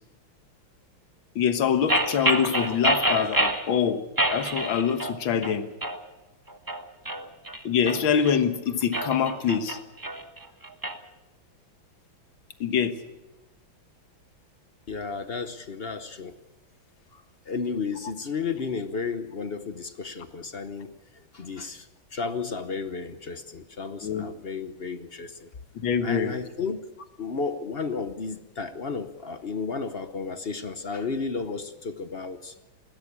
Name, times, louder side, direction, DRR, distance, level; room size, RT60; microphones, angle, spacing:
voice 1, 1.4-5.7 7.6-9.8 12.6-13.0 24.0-24.3 25.8-26.3, left 7 dB, 70° left, 9 dB, 2.0 m, -25 dB
sound 1, 1.9-3.7 4.2-5.2 5.4-6.0 6.5-8.3 8.8-11.0, right 1 dB, 15° right, 0.9 m, -27 dB
voice 2, 14.9-16.4 17.1-25.5 26.0-26.8 27.2-32.6, left 4 dB, 45° left, 10 dB, 0.7 m, -33 dB
21.0 x 16.0 x 8.5 m, 1.1 s
omnidirectional pair, 2.3 m